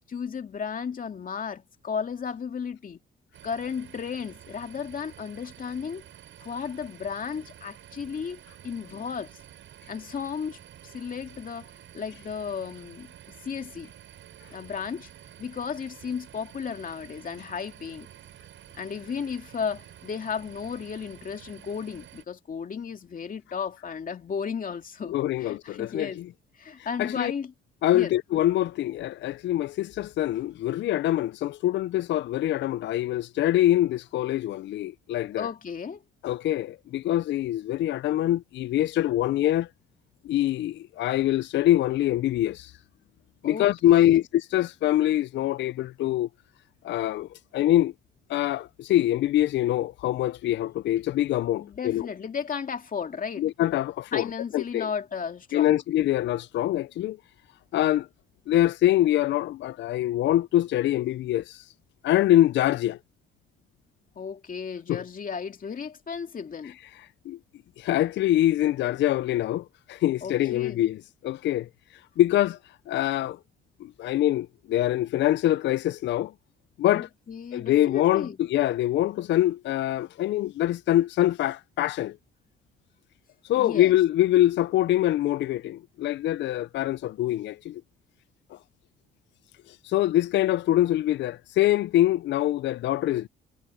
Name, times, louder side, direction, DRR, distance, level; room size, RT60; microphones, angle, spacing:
voice 1, 0.1-3.0 3.4-6.0 6.4-9.3 9.9-13.9 14.5-15.1 15.4-18.1 18.8-26.2 26.6-27.5 27.9-28.1 35.4-36.0 43.4-44.2 51.6-53.5 54.1-55.8 64.2-66.8 70.2-70.8 76.9-78.4 83.6-83.9, left 6 dB, 45° left, 2.4 m, -34 dB
sound 1, 3.3-22.2, right 11 dB, 75° right, 6.5 m, -50 dB
voice 2, 25.1-26.3 27.0-27.3 27.8-35.5 36.2-39.7 40.2-42.7 43.4-46.3 46.8-47.9 48.3-52.1 53.4-54.9 55.5-57.2 57.7-58.1 58.5-61.7 62.0-63.0 64.9-65.0 67.3-67.4 67.8-71.7 72.2-72.6 72.9-73.4 73.8-76.3 76.8-77.1 77.5-82.2 83.5-87.8 88.5-88.6 89.7-93.3, left 13 dB, 65° left, 0.4 m, -24 dB
cardioid pair, 90°, 20 cm